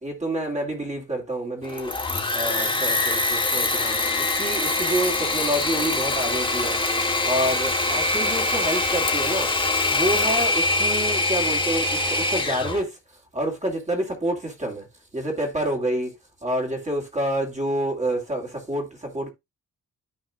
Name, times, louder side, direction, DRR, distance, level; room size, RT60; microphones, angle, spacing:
voice 1, 0.0-1.9 2.3-6.8 7.2-9.5 9.9-13.0 13.3-14.9 15.1-16.1 16.4-19.3, right 1 dB, 20° right, 2.4 m, -28 dB
Engine / Mechanisms, 1.6-12.8, left 2 dB, 15° left, 2.1 m, -24 dB
13.5 x 4.8 x 2.4 m
cardioid pair, 120°, 31 cm